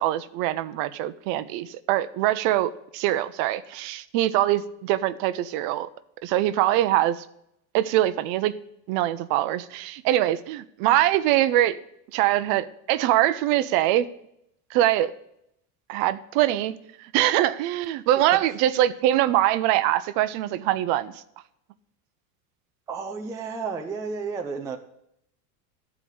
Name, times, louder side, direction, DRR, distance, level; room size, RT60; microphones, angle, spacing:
voice 1, 0.0-5.9 6.2-7.2 7.7-8.5 8.9-11.8 12.1-14.1 14.7-15.1 15.9-16.8 17.1-21.1, right 13 dB, 50° right, 14 dB, 0.7 m, -23 dB
voice 2, 22.9-24.8, right 5 dB, 5° right, 3 dB, 0.4 m, -32 dB
12.5 x 4.9 x 8.6 m, 0.77 s
supercardioid pair, 150°, 48 cm